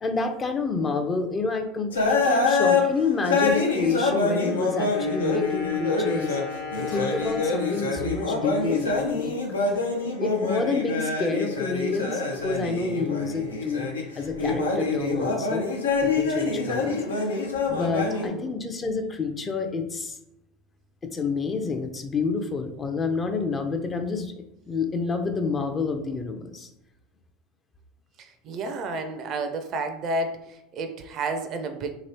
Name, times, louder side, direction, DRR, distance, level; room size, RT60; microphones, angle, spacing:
voice 1, 0.0-6.4 6.7-9.3 10.2-13.9 14.2-15.7 16.0-17.3 17.7-20.2 21.0-26.7, left 4 dB, 25° left, 6 dB, 0.4 m, -28 dB
sound 1, 1.9-14.0 14.3-18.3, left 3 dB, 85° left, 0.5 m, -26 dB
Wind instrument woodwind instrument, 3.8-9.6, left 3 dB, 65° left, 0.8 m, -38 dB
voice 2, 18.1-18.6 28.2-31.9, right 2 dB, 45° right, 7 dB, 0.4 m, -31 dB
2.9 x 2.9 x 2.7 m, 0.83 s
hypercardioid pair, 75°, 0 cm